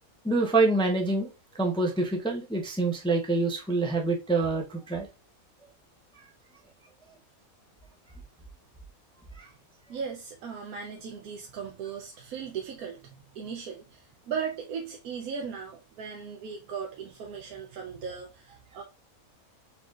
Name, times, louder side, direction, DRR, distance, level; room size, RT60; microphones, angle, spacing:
voice 1, 0.2-5.1 9.4-9.5, right 3 dB, 5° left, 0.4 m, -26 dB
voice 2, 9.9-18.8, right 6 dB, 85° right, 1.2 m, -37 dB
4.2 x 3.8 x 2.4 m
omnidirectional pair, 1.5 m